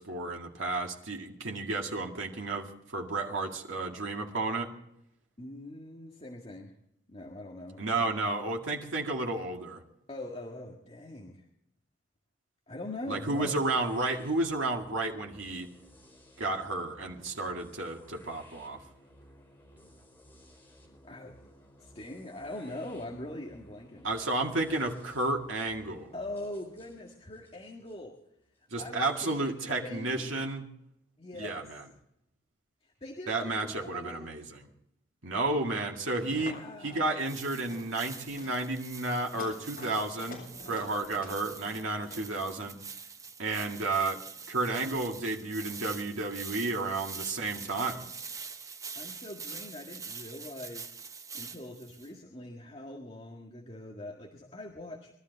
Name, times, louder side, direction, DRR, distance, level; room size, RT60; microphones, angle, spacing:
voice 1, 0.0-4.7 7.8-9.8 13.1-15.7 16.4-18.8 24.0-26.1 28.7-30.7 31.3-31.8 33.3-34.7 35.2-42.8 43.4-44.2 44.5-48.1, right 2 dB, 80° right, 1 dB, 2.1 m, -32 dB
voice 2, 5.4-6.7 7.1-8.2 10.1-11.5 12.7-13.5 21.0-21.3 21.8-24.1 26.1-28.2 28.7-30.5 31.2-31.7 32.8-34.3 36.4-37.3 49.0-50.9 51.3-55.1, left 1 dB, 30° left, -1 dB, 1.8 m, -42 dB
sound 1, 13.2-29.0, equal, 10° left, 4.4 m, -57 dB
sound 2, 36.1-36.5 36.8-37.2 37.5-37.9 38.2-38.5 39.1-42.3, left 3 dB, 45° left, 8.0 m, -48 dB
sound 3, 37.2-52.1, right 5 dB, 15° right, 0.6 m, -45 dB
22.5 x 13.0 x 4.0 m, 0.76 s
head